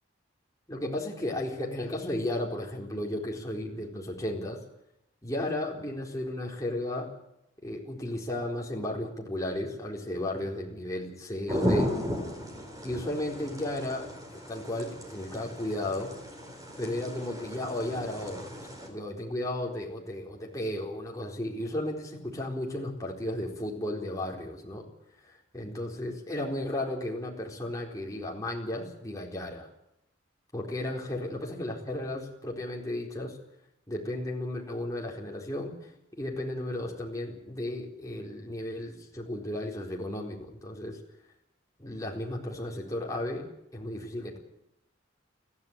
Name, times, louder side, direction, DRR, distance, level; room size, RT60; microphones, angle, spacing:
voice 1, 0.7-4.6 5.2-7.1 7.6-12.0 12.8-14.1 14.5-16.1 16.8-24.8 25.2-29.7 30.5-33.4 33.9-35.7 36.1-41.0 41.8-44.4, left 1 dB, 15° left, -1 dB, 4.3 m, -34 dB
sound 1, 11.5-18.9, equal, 20° right, 4.4 m, -35 dB
22.5 x 14.5 x 9.0 m, 0.80 s
head